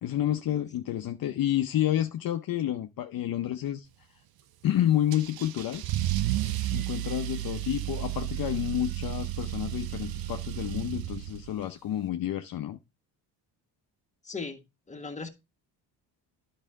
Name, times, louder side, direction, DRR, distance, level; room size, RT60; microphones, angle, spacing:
voice 1, 0.0-3.9 4.6-5.8 6.7-12.8, left 12 dB, 50° left, 0.7 m, -29 dB
Car / Engine starting / Accelerating revving vroom, 5.1-11.6, right 15 dB, 55° right, 0.7 m, -32 dB
voice 2, 14.3-14.6 14.9-15.3, left 4 dB, 15° left, 1.5 m, -37 dB
10.5 x 5.6 x 3.6 m
cardioid pair, 115°, 44 cm